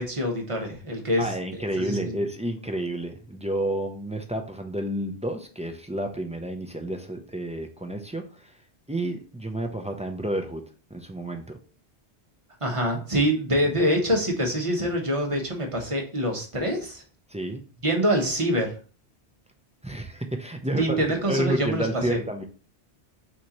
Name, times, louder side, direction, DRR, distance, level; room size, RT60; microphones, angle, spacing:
voice 1, 0.0-1.3 1.8-2.1 12.6-17.0 17.8-18.7 20.7-22.2, equal, 30° right, 1 dB, 1.1 m, -25 dB
voice 2, 1.2-8.6 8.9-10.6 10.9-11.6 17.3-17.6 19.8-21.0 21.3-22.4, right 1 dB, 10° right, 4 dB, 0.4 m, -30 dB
6.1 x 2.9 x 2.9 m, 0.38 s
omnidirectional pair, 1.1 m